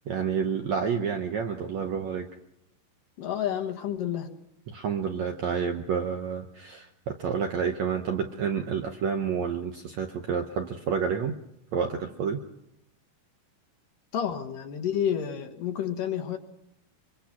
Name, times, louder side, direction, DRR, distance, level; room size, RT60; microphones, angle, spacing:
voice 1, 0.1-2.3 4.7-11.4 11.7-12.4, right 6 dB, 65° right, 4 dB, 1.8 m, -29 dB
voice 2, 3.2-4.3 14.1-16.4, left 9 dB, 65° left, 6 dB, 2.8 m, -30 dB
24.5 x 24.0 x 5.9 m, 0.82 s
omnidirectional pair, 4.4 m